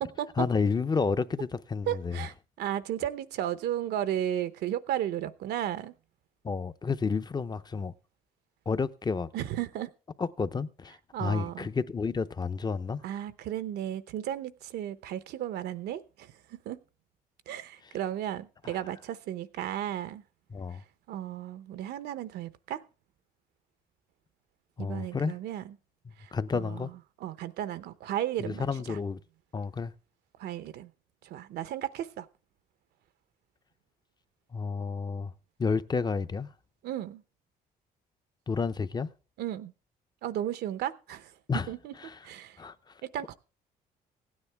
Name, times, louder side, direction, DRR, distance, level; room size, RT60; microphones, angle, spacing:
voice 1, 0.4-2.2 6.4-7.9 8.7-9.3 10.2-13.0 18.6-18.8 20.5-20.8 24.8-25.3 26.3-26.9 28.4-29.2 29.5-29.9 34.5-35.3 35.6-36.5 38.5-39.1 41.5-41.7 42.0-42.2 42.6-42.9, left 5 dB, 25° left, 0.7 m, -30 dB
voice 2, 1.9-5.9 9.3-9.9 11.1-11.7 13.0-16.8 17.5-20.2 20.7-20.8 21.1-22.8 24.8-25.8 26.2-29.0 30.4-30.9 31.2-32.3 36.8-37.2 39.4-39.7 40.2-41.3 41.7-41.9 42.2-42.6 43.0-43.3, right 11 dB, 80° right, 0.8 m, -34 dB
16.0 x 9.7 x 3.4 m
cardioid pair, 90°, 17 cm